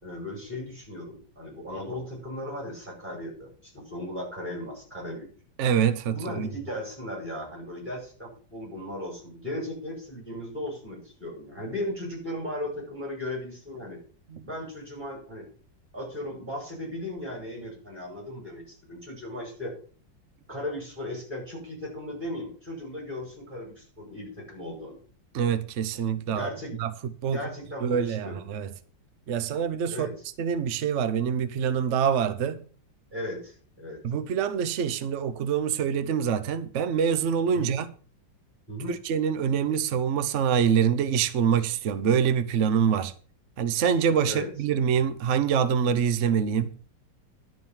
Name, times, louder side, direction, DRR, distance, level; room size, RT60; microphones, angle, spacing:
voice 1, 0.0-5.3 6.1-14.0 14.4-15.5 15.9-19.7 20.5-25.0 26.3-26.7 27.3-28.4 29.9-30.1 33.1-34.0 37.5-37.7 38.7-39.0 44.3-44.5, left 1 dB, 25° right, 5.7 m, -36 dB
voice 2, 5.6-6.5 14.3-14.5 25.3-26.5 26.8-27.4 27.8-28.7 29.3-30.1 30.4-32.6 34.0-37.9 38.9-43.1 43.6-46.7, right 7 dB, 55° right, 0.9 m, -25 dB
11.5 x 5.1 x 7.3 m
omnidirectional pair, 2.0 m